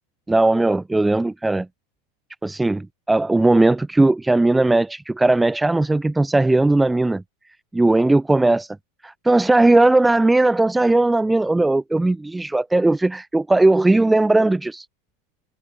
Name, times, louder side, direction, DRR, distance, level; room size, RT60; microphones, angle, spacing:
voice 1, 0.3-1.7 2.4-7.2 7.7-8.7 9.0-14.9, right 2 dB, 5° right, 2.0 m, -18 dB
figure-of-eight pair, 90°, 0 cm